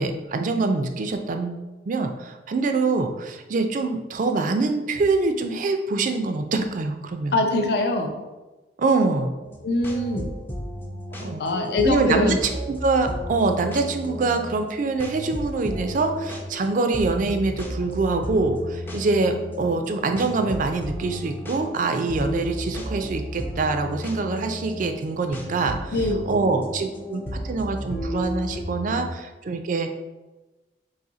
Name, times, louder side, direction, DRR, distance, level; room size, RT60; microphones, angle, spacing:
voice 1, 0.0-7.4 8.8-9.3 11.2-11.4 11.8-12.4 12.7-25.9 26.3-29.9, right 3 dB, 45° right, 6 dB, 0.4 m, -24 dB
voice 2, 7.3-8.1 9.6-10.3 11.4-12.4 25.9-26.3, left 2 dB, 65° left, 3 dB, 0.5 m, -23 dB
sound 1, 9.4-29.1, equal, 10° left, 0.4 m, -33 dB
4.1 x 2.7 x 3.8 m, 1.1 s
head